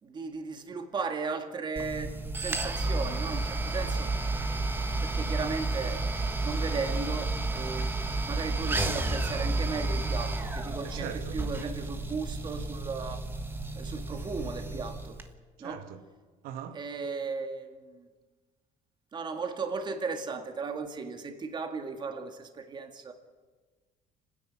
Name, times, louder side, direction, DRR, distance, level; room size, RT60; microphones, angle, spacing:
voice 1, 0.0-2.1 2.4-4.1 5.0-6.0 6.4-7.9 8.2-13.2 13.7-15.2 15.6-15.9 16.7-18.1 19.1-23.1, right 4 dB, 30° right, 2.0 m, -36 dB
sound 1, 1.8-15.3, right 2 dB, 15° right, 1.5 m, -31 dB
voice 2, 10.8-11.4 15.6-16.0 16.4-16.8, right 9 dB, 85° right, 1.3 m, -40 dB
30.0 x 10.0 x 8.7 m
cardioid pair, 145°, 15 cm